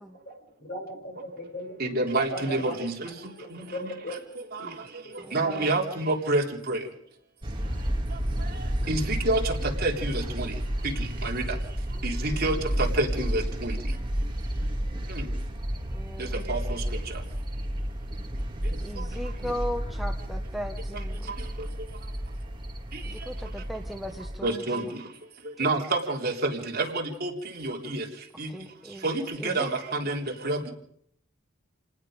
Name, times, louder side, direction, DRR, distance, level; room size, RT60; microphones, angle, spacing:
voice 1, 0.6-2.8 3.1-4.2 4.6-4.8, equal, 50° left, 1 dB, 7.8 m, -38 dB
voice 2, 1.8-3.1 3.5-4.2 4.5-4.7 5.3-6.8 8.6-10.5 10.8-11.4 12.0-13.8 15.1-15.3 16.2-17.0 19.4-19.5 24.4-25.0 25.6-28.1 28.4-28.5 29.0-30.7, right 2 dB, 50° right, 0 dB, 3.7 m, -28 dB
voice 3, 5.2-5.9 11.9-12.1 15.8-16.5 18.8-21.3 23.0-24.9 28.5-29.1 29.4-29.7, equal, ahead, 3 dB, 1.2 m, -38 dB
sound 1, 7.4-24.4, equal, 25° right, 2.3 m, -31 dB
29.0 x 19.5 x 5.2 m, 0.69 s
head